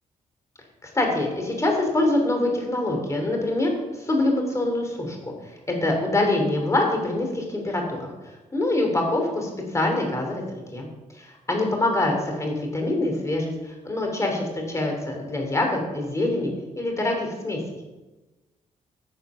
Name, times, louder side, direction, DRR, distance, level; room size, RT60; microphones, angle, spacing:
voice 1, 0.9-3.7 4.0-5.3 5.7-8.1 8.5-10.9 11.2-17.6, left 2 dB, 20° left, 2 dB, 3.1 m, -25 dB
10.0 x 6.7 x 6.9 m, 1.1 s
cardioid pair, 110°, 14 cm